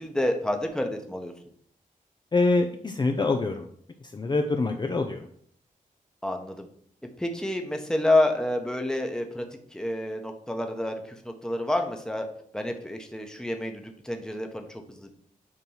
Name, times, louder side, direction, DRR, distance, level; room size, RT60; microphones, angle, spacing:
voice 1, 0.0-1.3 6.2-6.7 7.2-9.4 9.7-12.3 12.5-15.1, left 1 dB, 5° left, 4 dB, 0.9 m, -28 dB
voice 2, 2.3-3.7 4.0-5.3, left 3 dB, 30° left, 5 dB, 0.5 m, -25 dB
8.7 x 3.0 x 5.5 m, 0.63 s
wide cardioid pair, 140°, 14 cm